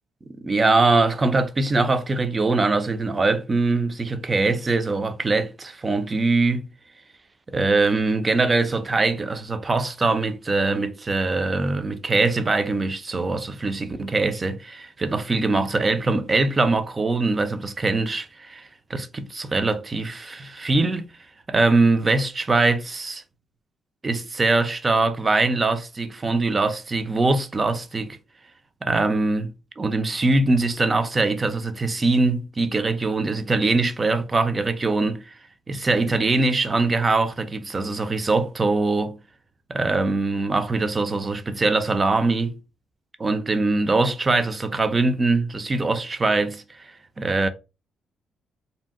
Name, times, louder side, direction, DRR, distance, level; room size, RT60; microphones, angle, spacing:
voice 1, 0.4-6.7 7.5-21.0 21.5-23.2 24.0-28.2 28.8-35.3 35.7-39.2 39.7-42.6 43.2-47.5, right 3 dB, 25° right, 0.5 m, -22 dB
2.7 x 2.1 x 3.5 m
cardioid pair, 95°, 0 cm